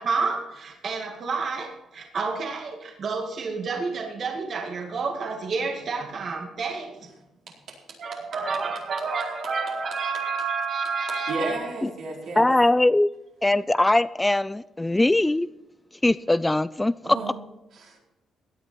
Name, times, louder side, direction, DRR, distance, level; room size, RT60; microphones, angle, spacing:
voice 1, 0.0-7.1 8.0-11.7, right 4 dB, 55° right, 2 dB, 2.1 m, -29 dB
voice 2, 7.5-8.2 11.1-12.5 17.0-17.4 17.7-18.0, right 3 dB, 70° right, -2 dB, 4.4 m, -34 dB
voice 3, 12.4-13.1 13.4-15.5 16.0-17.2, left 2 dB, 15° left, 17 dB, 0.3 m, -21 dB
17.0 x 10.5 x 4.3 m, 0.93 s
cardioid pair, 90°, 0 cm